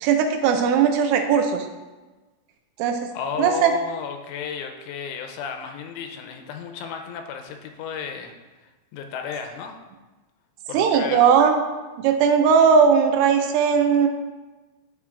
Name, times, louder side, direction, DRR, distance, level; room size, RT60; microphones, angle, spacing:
voice 1, 0.0-1.7 2.8-3.1 3.4-3.7 10.7-11.6 12.0-14.1, right 6 dB, 85° right, 4 dB, 3.1 m, -18 dB
voice 2, 3.1-8.3 8.6-9.8 10.7-11.2, left 7 dB, 85° left, 5 dB, 3.0 m, -33 dB
13.5 x 5.1 x 2.4 m, 1.2 s
omnidirectional pair, 5.7 m